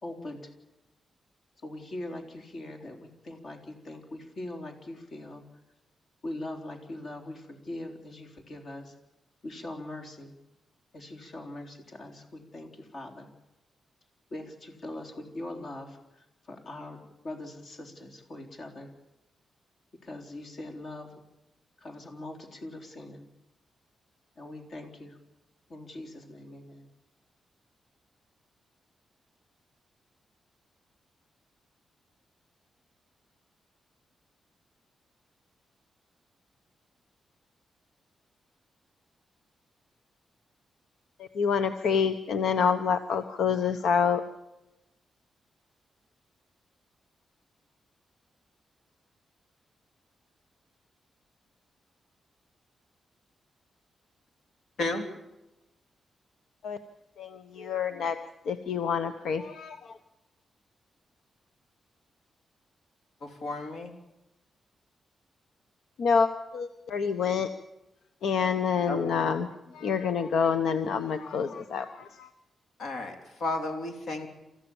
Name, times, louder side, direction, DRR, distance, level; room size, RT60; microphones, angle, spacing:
voice 1, 0.0-0.5 1.6-5.4 6.2-9.0 9.4-10.4 10.9-13.3 14.3-17.0 17.2-18.9 20.0-21.2 21.8-23.3 24.4-25.2 25.7-26.9, left 1 dB, 50° left, 3 dB, 3.9 m, -41 dB
voice 2, 41.3-44.2 56.6-56.8 57.2-58.2 58.5-59.8 66.0-67.5 68.2-69.5 69.7-72.3, left 6 dB, 85° left, 9 dB, 1.0 m, -27 dB
voice 3, 63.2-63.9 68.9-69.2 72.8-74.3, left 2 dB, 70° left, 4 dB, 3.8 m, -33 dB
28.0 x 15.0 x 7.3 m, 0.94 s
wide cardioid pair, 140°, 0 cm